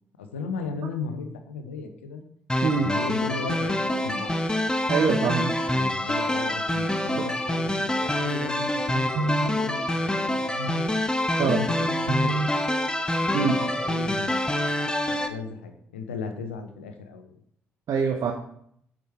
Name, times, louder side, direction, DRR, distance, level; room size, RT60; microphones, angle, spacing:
voice 1, 0.2-2.2 2.7-4.5 5.7-10.9 11.4-12.4 13.2-14.4 15.1-17.3, left 4 dB, 85° left, 7 dB, 0.7 m, -36 dB
sound 1, 2.5-15.3, left 1 dB, 15° left, 0.9 m, -26 dB
voice 2, 4.9-5.5 7.2-7.3 9.1-9.6 11.4-11.6 12.1-12.5 13.3-13.6 17.9-18.3, right 5 dB, 55° right, 3 dB, 0.8 m, -24 dB
7.9 x 5.0 x 4.4 m, 0.69 s
hypercardioid pair, 45°, 6 cm